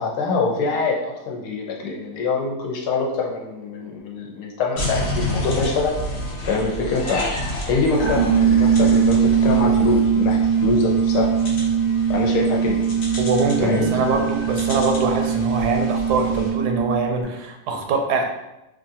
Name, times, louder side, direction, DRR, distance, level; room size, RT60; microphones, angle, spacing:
voice 1, 0.0-6.0 6.4-7.3 7.6-11.3 12.1-12.8 13.6-14.0, left 4 dB, 80° left, -1 dB, 1.2 m, -24 dB
sound 1, 4.8-16.5, left 1 dB, 55° left, 0.8 m, -31 dB
sound 2, 8.0-17.2, right 7 dB, 15° left, 0.7 m, -20 dB
voice 2, 13.2-18.2, right 3 dB, 85° right, 3 dB, 1.1 m, -23 dB
3.2 x 2.4 x 2.6 m, 0.94 s
omnidirectional pair, 1.7 m